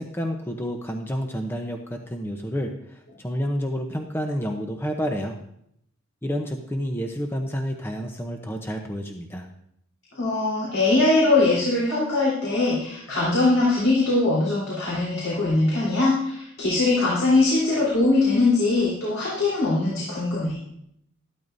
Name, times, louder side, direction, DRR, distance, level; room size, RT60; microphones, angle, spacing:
voice 1, 0.0-5.4 6.2-9.5, equal, 10° left, 3 dB, 0.8 m, -29 dB
voice 2, 10.1-20.6, left 2 dB, 85° left, -6 dB, 3.9 m, -21 dB
14.0 x 12.0 x 2.7 m, 0.75 s
head